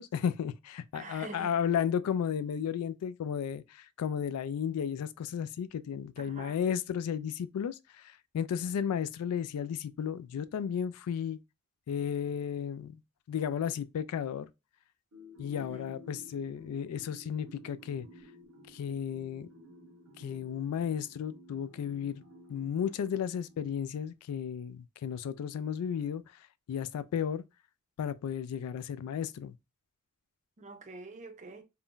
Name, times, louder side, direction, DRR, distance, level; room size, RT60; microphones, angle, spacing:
voice 1, 0.0-7.8 8.3-11.4 11.9-13.0 13.3-14.5 15.4-18.1 18.7-19.5 20.2-22.2 22.5-26.2 26.7-27.4 28.0-29.5, left 8 dB, 80° left, 0.3 m, -33 dB
voice 2, 0.9-1.5 6.2-6.6 15.6-16.0 30.6-31.6, right 3 dB, 35° right, 0.5 m, -46 dB
sound 1, 15.1-23.9, left 1 dB, 90° right, 1.0 m, -54 dB
2.5 x 2.1 x 3.6 m
head